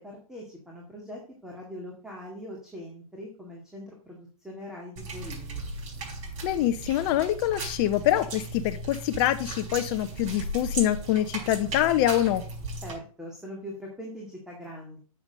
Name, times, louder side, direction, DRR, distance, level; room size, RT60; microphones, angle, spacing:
voice 1, 0.0-5.7 12.8-15.0, equal, 5° right, -2 dB, 2.1 m, -42 dB
sound 1, 5.0-12.9, right 2 dB, 55° right, 5.2 m, -37 dB
voice 2, 6.4-12.4, left 13 dB, 40° left, 9 dB, 0.6 m, -25 dB
7.7 x 7.0 x 5.2 m, 0.41 s
hypercardioid pair, 130°, 19 cm